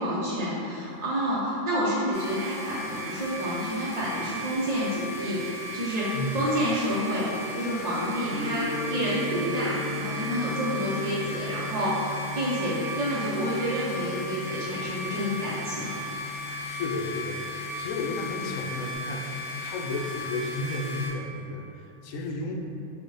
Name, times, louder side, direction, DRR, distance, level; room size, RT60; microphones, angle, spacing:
voice 1, 0.0-5.4 5.7-12.0 12.3-15.9, equal, 50° right, -7 dB, 0.5 m, -29 dB
sound 1, 2.1-21.1, equal, 40° left, 1.8 m, -36 dB
Gong, 8.3-18.9, left 3 dB, 85° right, 1.3 m, -38 dB
voice 2, 16.6-22.5, left 2 dB, 80° left, 0 dB, 1.0 m, -33 dB
5.0 x 2.1 x 4.6 m, 2.8 s
omnidirectional pair, 1.4 m